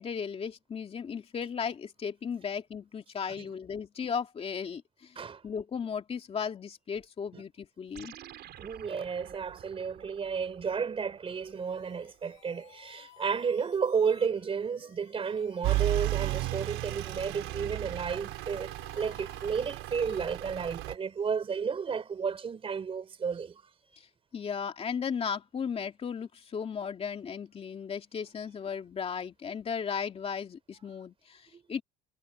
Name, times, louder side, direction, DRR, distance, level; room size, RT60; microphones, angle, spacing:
voice 1, 0.0-8.1 24.0-24.1 24.3-31.8, left 6 dB, 30° left, 2.7 m, -36 dB
sound 1, 7.9-12.6, right 12 dB, 55° right, 5.3 m, -52 dB
voice 2, 8.6-23.6 31.5-31.6, right 6 dB, 30° right, 3.9 m, -32 dB
sound 2, 11.3-20.3, left 16 dB, 75° left, 7.4 m, -58 dB
Truck / Idling, 15.6-20.9, right 18 dB, 85° right, 3.8 m, -33 dB
cardioid pair, 145°, 20 cm